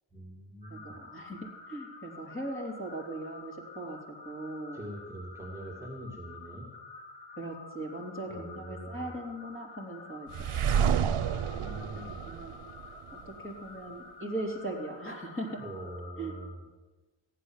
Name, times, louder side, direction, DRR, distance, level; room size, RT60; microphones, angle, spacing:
voice 1, 0.1-1.0 4.7-6.7 8.3-9.2 11.0-12.2 15.6-16.6, right 1 dB, 5° right, -1 dB, 2.3 m, -43 dB
sound 1, 0.6-16.5, left 4 dB, 55° left, 3.3 m, -49 dB
voice 2, 0.7-4.0 4.2-4.8 7.4-10.3 12.1-12.6 13.3-15.6 16.2-16.3, right 1 dB, 25° left, -1 dB, 3.5 m, -39 dB
sound 2, 10.3-13.3, right 8 dB, 90° right, 0.7 m, -29 dB
15.0 x 10.0 x 7.5 m, 1.2 s
wide cardioid pair, 90°, 49 cm